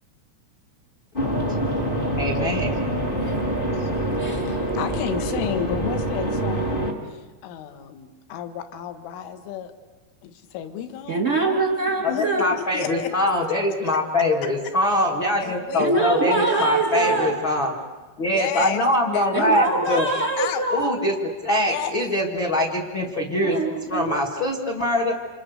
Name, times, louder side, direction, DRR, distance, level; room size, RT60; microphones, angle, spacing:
sound 1, 1.1-6.9, right 1 dB, 30° left, 0.9 m, -25 dB
voice 1, 2.2-2.7 12.1-17.7 18.2-20.1 20.7-23.6 23.9-25.2, left 1 dB, 55° left, 1 dB, 1.3 m, -23 dB
voice 2, 3.1-3.4 3.8-3.9 4.2-4.4 11.1-12.5 15.8-17.3 19.3-20.9 23.3-24.2, right 3 dB, 30° right, 0 dB, 1.2 m, -24 dB
voice 3, 4.5-9.7 10.2-11.6 12.1-12.3 12.7-13.1 13.8-14.0 15.4-17.4 18.2-18.8 19.1-20.0 20.4-20.7 21.6-21.9, left 9 dB, 70° left, 8 dB, 3.9 m, -32 dB
30.0 x 27.0 x 6.6 m, 1.2 s
omnidirectional pair, 6.0 m